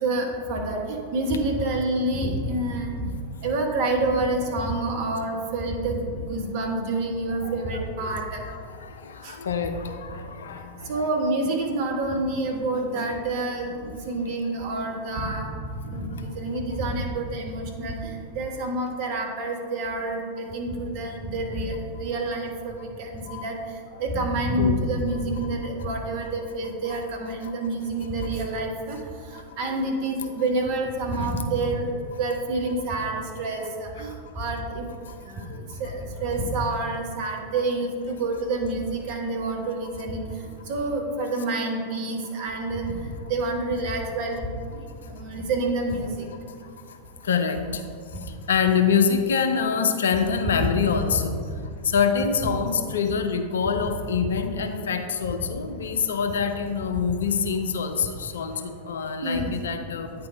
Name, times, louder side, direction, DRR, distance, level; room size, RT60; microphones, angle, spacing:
voice 1, 0.0-3.1 3.4-8.4 9.2-9.4 10.9-23.6 24.0-29.0 29.3-31.9 32.2-34.9 35.3-35.4 35.8-40.2 40.7-42.9 43.3-44.8 45.1-46.3 51.5-51.6 59.2-59.5, right 2 dB, 50° right, 1 dB, 1.1 m, -28 dB
voice 2, 7.4-7.9 8.2-11.0 13.0-13.1 23.3-23.4 24.6-24.8 25.4-25.5 26.9-27.0 31.1-31.3 47.2-47.8 48.5-51.4 51.9-60.1, left 6 dB, 65° left, 6 dB, 0.5 m, -25 dB
9.3 x 3.5 x 4.4 m, 2.2 s
figure-of-eight pair, 90°, 0 cm